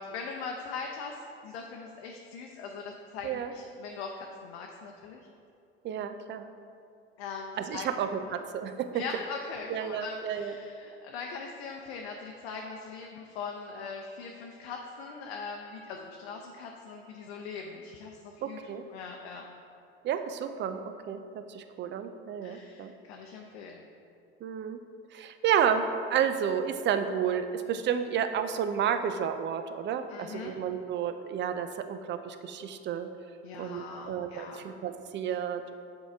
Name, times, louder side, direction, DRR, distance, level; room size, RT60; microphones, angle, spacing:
voice 1, 0.0-5.2 7.2-7.9 8.3-8.4 8.9-19.5 22.4-23.9 30.1-30.6 33.4-34.7, left 5 dB, 75° left, 1 dB, 0.6 m, -41 dB
voice 2, 5.8-6.5 7.6-9.0 9.7-10.5 18.4-18.9 20.0-22.9 24.4-24.8 25.1-33.1 33.6-35.8, right 8 dB, 35° right, 9 dB, 0.5 m, -31 dB
7.0 x 3.8 x 4.4 m, 2.5 s
hypercardioid pair, 70°, 31 cm